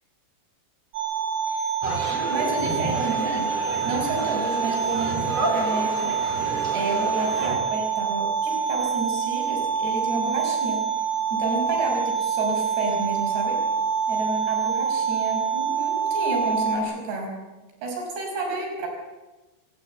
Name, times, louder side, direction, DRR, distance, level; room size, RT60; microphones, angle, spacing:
sound 1, 0.9-16.8, right 6 dB, 60° right, 3.5 m, -26 dB
sound 2, 1.8-7.6, right 2 dB, 40° right, 4.8 m, -31 dB
voice 1, 2.3-3.5 3.9-6.4 6.7-10.8 11.3-13.6 14.1-17.3 17.8-18.9, right 3 dB, 90° right, 1 dB, 7.8 m, -30 dB
28.0 x 14.5 x 8.5 m, 1.1 s
omnidirectional pair, 4.7 m